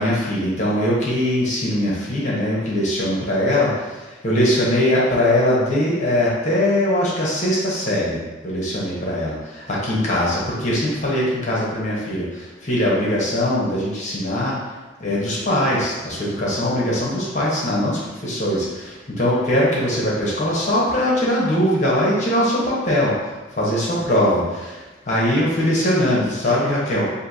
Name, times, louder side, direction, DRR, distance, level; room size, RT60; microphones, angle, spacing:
voice 1, 0.0-8.2 8.4-14.6 15.0-23.1 23.6-27.1, left 1 dB, 40° left, -6 dB, 1.0 m, -21 dB
6.3 x 2.7 x 2.7 m, 1.2 s
head